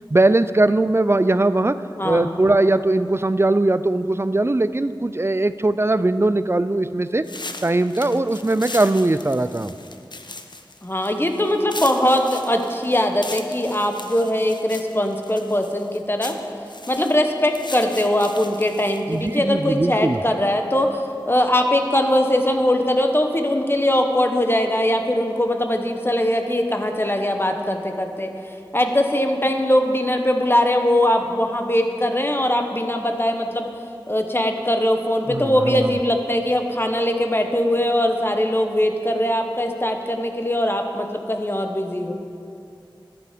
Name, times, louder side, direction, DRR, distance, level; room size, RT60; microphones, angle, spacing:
voice 1, 0.1-1.8 2.0-7.3 7.6-9.7 19.1-20.2 35.3-36.0, right 2 dB, 30° right, 13 dB, 0.4 m, -20 dB
voice 2, 2.0-2.4 10.8-16.3 16.9-21.0 21.3-33.7 34.1-42.1, left 1 dB, 25° left, 4 dB, 1.0 m, -21 dB
sound 1, 7.2-19.4, left 2 dB, 60° left, 0.7 m, -38 dB
13.5 x 9.4 x 5.1 m, 2.6 s
wide cardioid pair, 45°, 9 cm